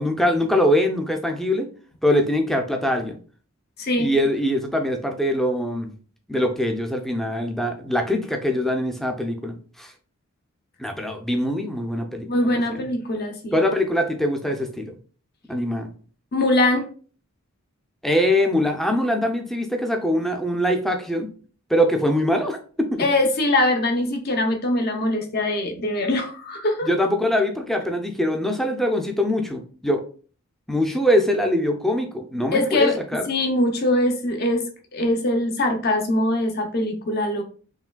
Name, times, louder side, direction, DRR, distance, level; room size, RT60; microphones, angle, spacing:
voice 1, 0.0-1.7 2.0-3.2 4.0-5.9 6.3-9.9 10.8-12.9 13.5-14.9 15.5-15.9 18.0-21.3 21.7-23.0 26.8-30.0 30.7-33.2, equal, ahead, 4 dB, 0.5 m, -23 dB
voice 2, 3.8-4.1 12.3-13.6 16.3-16.9 23.0-26.9 32.5-33.0 33.3-34.6 34.9-37.4, left 1 dB, 45° left, 4 dB, 0.7 m, -22 dB
4.8 x 3.2 x 2.2 m, 0.41 s
head